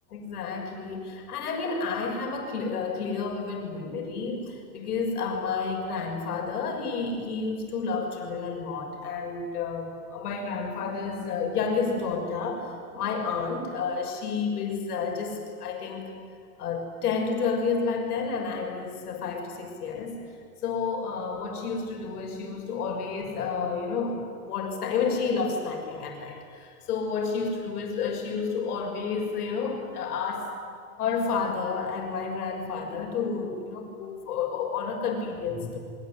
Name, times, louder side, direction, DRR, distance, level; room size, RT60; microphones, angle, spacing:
voice 1, 0.1-12.7 12.9-16.1 16.6-20.2 20.6-30.5 31.0-35.8, left 5 dB, 80° left, 2 dB, 6.7 m, -30 dB
24.5 x 23.0 x 9.9 m, 2.3 s
supercardioid pair, 160°, 45 cm